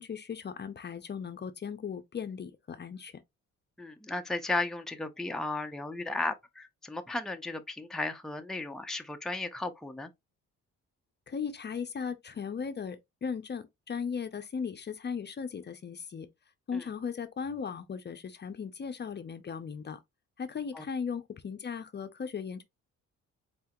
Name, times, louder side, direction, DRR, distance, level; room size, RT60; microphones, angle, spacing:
voice 1, 0.0-3.2 11.3-16.3 16.7-20.0 20.4-22.6, left 6 dB, 35° left, 0.7 m, -37 dB
voice 2, 3.8-10.1 16.7-16.8 20.7-20.8, left 2 dB, ahead, 0.6 m, -35 dB
4.3 x 3.4 x 3.0 m
cardioid pair, 90°, 30 cm